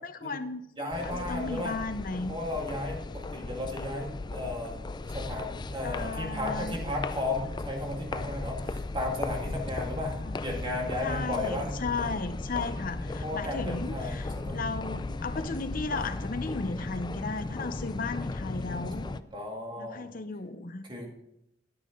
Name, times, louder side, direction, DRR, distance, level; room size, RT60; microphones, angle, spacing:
voice 1, 0.0-2.3 5.8-6.8 10.2-10.4 11.0-19.1 19.8-20.9, left 3 dB, 50° left, 9 dB, 0.8 m, -35 dB
voice 2, 0.8-1.8 2.3-11.7 13.1-14.6 19.0-20.1 20.8-21.1, left 1 dB, 30° right, 0 dB, 2.2 m, -35 dB
sound 1, 0.9-19.2, left 2 dB, 25° left, 0.4 m, -36 dB
9.8 x 9.8 x 3.8 m, 0.81 s
head